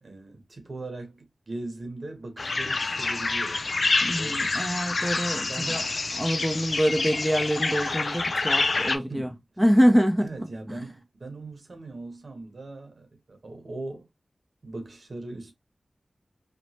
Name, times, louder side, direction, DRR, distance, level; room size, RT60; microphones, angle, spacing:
voice 1, 0.0-3.7 4.1-4.5 5.5-5.9 9.1-9.4 10.2-14.1 14.6-15.5, right 2 dB, 65° right, 0.9 m, -39 dB
sound 1, 2.4-9.0, left 3 dB, 65° left, 0.3 m, -27 dB
voice 2, 4.0-5.8 6.2-9.3 9.6-10.3, equal, 5° right, 0.5 m, -24 dB
3.0 x 2.0 x 2.8 m
cardioid pair, 50°, 0 cm